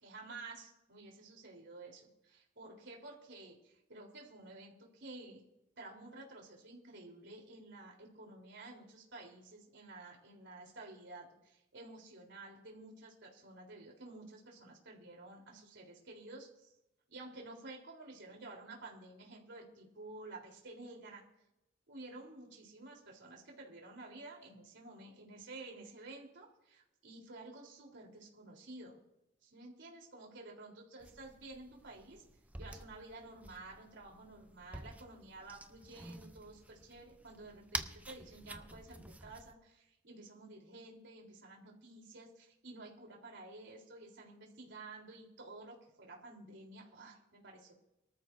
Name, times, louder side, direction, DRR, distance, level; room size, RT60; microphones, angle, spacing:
voice 1, 0.0-5.4 5.8-16.7 17.1-21.2 21.9-29.0 29.4-32.2 32.6-47.7, right 2 dB, 65° right, 0 dB, 3.7 m, -52 dB
sound 1, 31.0-39.5, right 2 dB, 10° right, 0.7 m, -49 dB
23.5 x 13.5 x 2.6 m, 0.89 s
head